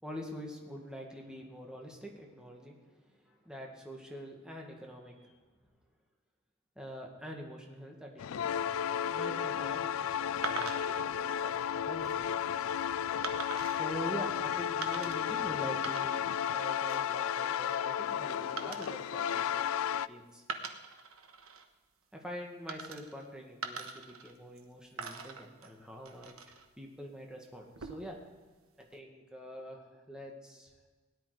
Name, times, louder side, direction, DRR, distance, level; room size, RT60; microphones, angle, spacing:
voice 1, 0.0-2.8 3.1-5.3 6.8-12.7 13.8-16.2 16.5-20.4 22.1-28.2 28.8-30.7, equal, 5° right, 0 dB, 1.9 m, -45 dB
sound 1, 8.2-20.1, left 9 dB, 70° left, 0.4 m, -33 dB
sound 2, 10.4-11.1 11.8-12.1 13.2-13.8 14.8-15.4 15.7-16.4 16.7-17.1 18.6-20.0 20.4-21.6 22.7-23.3 23.6-24.6 25.0-26.7 27.6-28.2, right 5 dB, 80° right, 1.2 m, -43 dB
17.5 x 10.5 x 5.0 m, 1.3 s
head